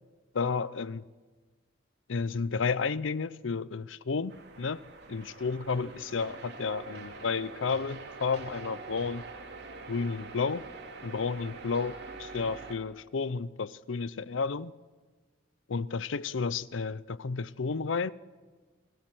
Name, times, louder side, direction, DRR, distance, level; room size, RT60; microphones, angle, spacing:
voice 1, 0.3-1.1 2.1-9.3 9.9-10.7 11.0-14.7 15.7-18.1, left 5 dB, 90° left, 0.6 m, -32 dB
sound 1, 4.3-12.8, right 3 dB, 60° right, 2.9 m, -45 dB
28.0 x 16.5 x 7.8 m
head